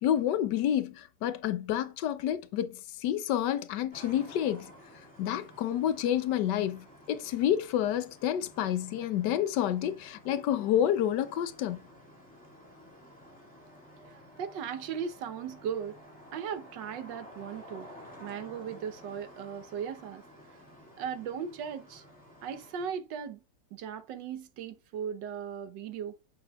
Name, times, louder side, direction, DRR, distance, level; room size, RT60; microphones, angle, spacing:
voice 1, 0.0-4.7 5.2-11.8, left 10 dB, 75° left, 1.3 m, -29 dB
sound 1, 3.9-22.9, equal, 5° left, 2.0 m, -52 dB
voice 2, 14.1-16.0 16.3-17.9 18.2-20.2 21.0-22.0 22.4-23.4 23.7-26.2, right 7 dB, 90° right, 1.5 m, -37 dB
7.0 x 6.8 x 2.3 m
omnidirectional pair, 1.9 m